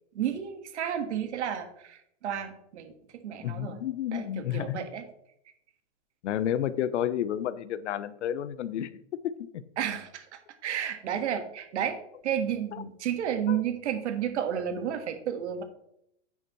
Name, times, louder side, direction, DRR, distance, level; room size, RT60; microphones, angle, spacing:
voice 1, 0.1-3.8 4.1-5.1 9.8-15.6, right 9 dB, 75° right, 7 dB, 1.6 m, -32 dB
voice 2, 3.4-4.8 6.2-8.9 9.2-9.6 12.7-12.8 13.5-13.6, left 10 dB, 85° left, 15 dB, 0.8 m, -31 dB
9.9 x 8.1 x 3.1 m, 0.75 s
supercardioid pair, 155°, 35 cm